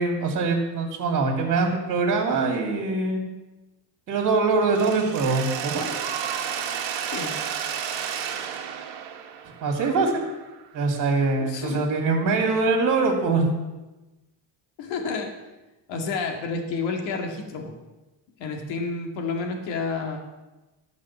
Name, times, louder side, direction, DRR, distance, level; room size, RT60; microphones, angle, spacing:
voice 1, 0.0-3.2 4.1-5.9 9.6-10.2 10.7-13.5, right 3 dB, 45° right, 2 dB, 2.5 m, -23 dB
Mechanisms, 4.7-10.6, right 8 dB, 65° right, 1.4 m, -32 dB
voice 2, 11.4-11.9 14.8-15.3 15.9-17.8 18.4-20.2, left 4 dB, 80° left, 2 dB, 2.0 m, -30 dB
12.5 x 5.5 x 7.2 m, 1.1 s
cardioid pair, 140°, 45 cm